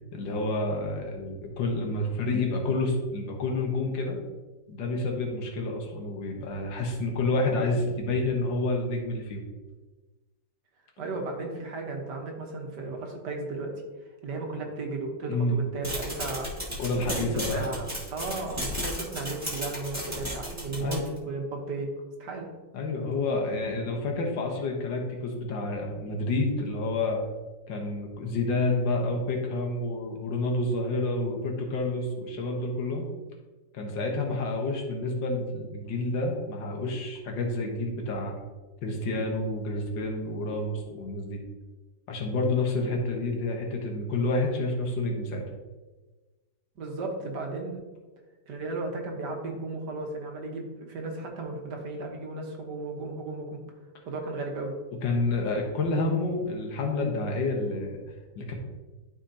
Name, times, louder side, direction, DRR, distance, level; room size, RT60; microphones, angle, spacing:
voice 1, 0.1-4.2 4.7-9.4 15.3-15.6 16.8-17.8 20.8-21.0 22.7-27.2 27.7-33.1 33.7-38.4 38.8-41.4 42.1-45.4 55.0-58.0 58.4-58.5, left 2 dB, 85° left, 1 dB, 1.9 m, -29 dB
voice 2, 11.0-13.7 14.2-16.5 17.1-21.0 21.3-21.9 22.2-22.5 46.8-47.9 48.5-53.6 54.1-54.7, right 3 dB, 70° right, 1 dB, 1.7 m, -35 dB
sound 1, 15.8-21.2, equal, 10° right, 1.5 m, -34 dB
12.5 x 4.4 x 2.8 m, 1.3 s
omnidirectional pair, 2.0 m